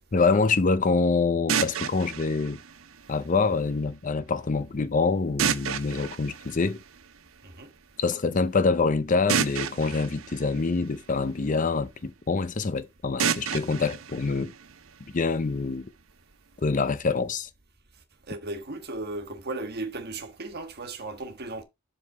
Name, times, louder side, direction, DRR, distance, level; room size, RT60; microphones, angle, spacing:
voice 1, 0.1-2.6 3.1-6.8 8.0-14.5 15.1-15.9 16.6-17.5, left 4 dB, 40° left, 0.6 m, -25 dB
sound 1, 1.5-3.5 5.4-7.4 9.3-11.5 13.2-15.2, right 7 dB, 85° right, 0.7 m, -31 dB
voice 2, 18.3-21.6, right 2 dB, 50° right, 1.4 m, -36 dB
7.7 x 3.8 x 5.5 m
head